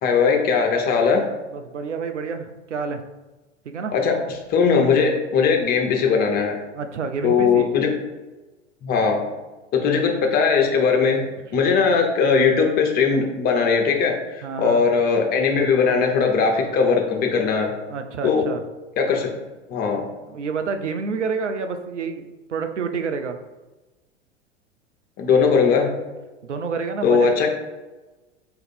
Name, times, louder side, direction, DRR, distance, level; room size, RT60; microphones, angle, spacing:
voice 1, 0.0-1.2 3.9-4.2 4.5-6.6 7.2-7.9 8.8-9.2 9.7-17.7 18.2-18.4 19.0-19.3 19.7-20.0 25.2-25.9 27.0-27.5, left 5 dB, 25° left, 2 dB, 0.7 m, -19 dB
voice 2, 1.5-3.0 3.6-3.9 4.7-4.8 6.7-7.7 14.4-14.8 17.9-18.6 20.3-23.4 26.4-27.3, right 5 dB, 80° right, 7 dB, 0.5 m, -28 dB
3.9 x 2.6 x 4.2 m, 1.1 s
figure-of-eight pair, 90°, 35 cm